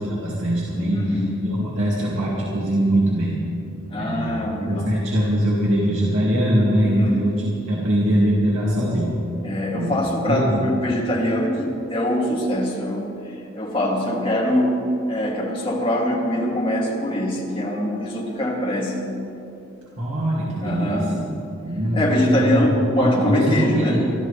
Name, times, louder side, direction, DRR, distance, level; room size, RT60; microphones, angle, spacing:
voice 1, 0.0-3.4 4.0-9.1 9.8-9.9 10.3-10.7 20.0-21.3 21.6-24.0, equal, 85° right, -6 dB, 2.4 m, -22 dB
voice 2, 0.9-1.4 3.9-4.9 6.8-7.2 9.4-14.8 15.1-19.0 20.6-21.1 21.9-24.0, left 1 dB, 25° left, -4 dB, 2.6 m, -23 dB
24.5 x 13.0 x 3.3 m, 2.8 s
head